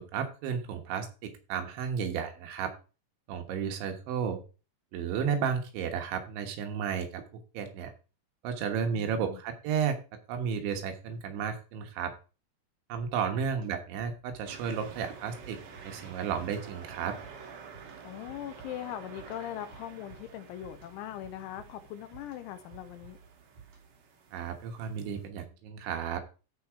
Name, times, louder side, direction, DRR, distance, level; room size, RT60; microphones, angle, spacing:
voice 1, 0.0-2.7 3.3-4.4 4.9-7.2 7.6-7.9 8.4-10.0 10.3-12.1 12.9-15.6 15.8-17.2 24.3-26.2, right 7 dB, 75° right, 3.5 m, -33 dB
voice 2, 8.9-9.4 13.3-13.4 18.0-23.2, left 12 dB, 85° left, 3.0 m, -41 dB
sound 1, 14.4-25.3, right 5 dB, 55° right, 2.6 m, -50 dB
sound 2, 14.9-24.1, right 6 dB, 40° right, 5.4 m, -56 dB
14.0 x 4.8 x 4.7 m
omnidirectional pair, 5.7 m